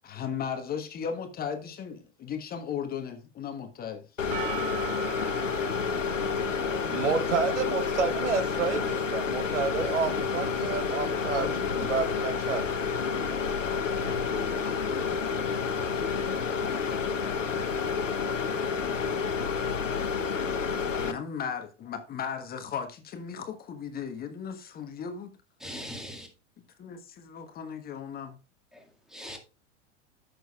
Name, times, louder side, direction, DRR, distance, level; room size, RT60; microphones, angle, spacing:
voice 1, 0.0-4.0 11.3-12.1 21.0-25.3 26.8-28.4, left 7 dB, 25° left, 1.2 m, -36 dB
sound 1, 4.2-21.1, left 5 dB, 85° left, 1.0 m, -29 dB
Percussion, 4.3-9.3, right 12 dB, 20° right, 0.3 m, -42 dB
voice 2, 6.7-11.5 11.9-12.7, right 5 dB, 70° right, 1.1 m, -30 dB
voice 3, 25.6-26.3 28.7-29.4, equal, ahead, 2.0 m, -41 dB
14.0 x 6.5 x 2.4 m
figure-of-eight pair, 95°, 37 cm